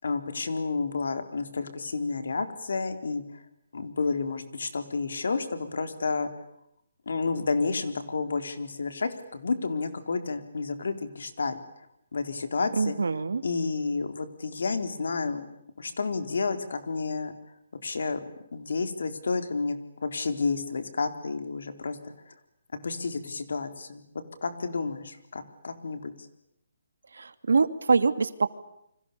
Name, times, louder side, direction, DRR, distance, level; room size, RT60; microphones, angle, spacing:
voice 1, 0.0-3.4 3.7-6.3 7.1-11.6 12.1-13.0 13.4-15.5 15.8-17.3 17.8-18.2 18.5-22.4 22.8-24.1 24.4-26.3, left 4 dB, 65° left, 9 dB, 4.1 m, -30 dB
voice 2, 12.7-13.4 27.1-28.5, right 4 dB, 90° right, 12 dB, 2.5 m, -24 dB
30.0 x 26.0 x 7.0 m, 0.78 s
hypercardioid pair, 180°, 0 cm